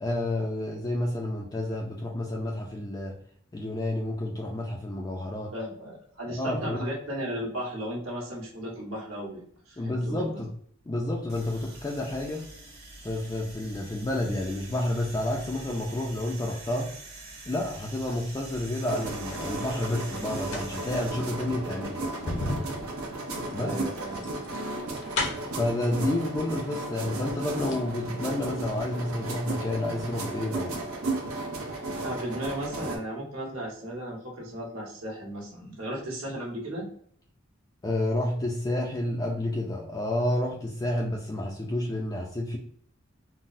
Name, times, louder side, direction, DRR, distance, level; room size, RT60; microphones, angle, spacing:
voice 1, 0.0-3.2 3.5-5.5 6.3-6.8 9.8-10.5 10.9-12.4 13.0-16.9 17.5-22.0 23.5-23.7 25.5-30.8 37.8-42.6, left 1 dB, 15° left, -1 dB, 0.3 m, -30 dB
voice 2, 5.5-10.4 23.6-24.2 32.0-36.9, right 1 dB, 75° right, -3 dB, 1.3 m, -35 dB
sound 1, 11.3-21.1, right 2 dB, 50° right, 1.2 m, -45 dB
sound 2, 18.6-19.5 20.3-25.7 26.6-26.7 27.1-27.9 28.2-28.3, left 2 dB, 55° left, 0.7 m, -35 dB
sound 3, 18.8-33.0, right 2 dB, 90° right, 0.7 m, -34 dB
3.8 x 2.1 x 2.5 m, 0.62 s
head